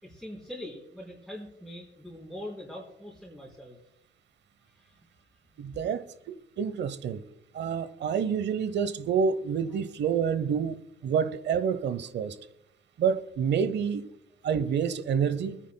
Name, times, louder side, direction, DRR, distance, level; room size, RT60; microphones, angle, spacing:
voice 1, 0.0-3.8 4.7-5.0 5.8-5.9, left 1 dB, ahead, 3.3 m, -43 dB
voice 2, 5.6-7.2 7.5-12.4 13.0-14.1 14.4-15.6, right 7 dB, 65° right, 0.8 m, -28 dB
23.0 x 10.0 x 2.2 m
cardioid pair, 90°, 20 cm